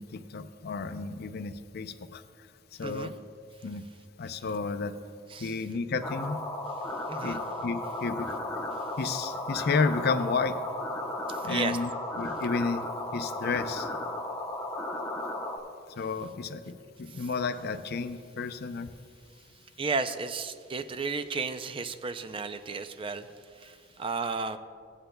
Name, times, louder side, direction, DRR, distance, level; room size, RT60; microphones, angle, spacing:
voice 1, 0.0-2.2 2.8-3.1 3.6-3.8 4.2-4.9 5.4-6.4 7.2-8.3 9.0-10.6 11.4-11.9 12.2-12.9 13.1-13.9 16.0-18.9, left 4 dB, 55° left, 9 dB, 0.5 m, -31 dB
voice 2, 2.8-3.1 5.3-5.5 7.1-7.4 11.3-11.8 17.1-17.2 19.8-23.3 23.6-24.6, right 4 dB, 30° right, 10 dB, 0.4 m, -33 dB
sound 1, 6.0-15.6, left 1 dB, 10° left, 0.8 m, -35 dB
15.5 x 9.9 x 2.2 m, 2.2 s
head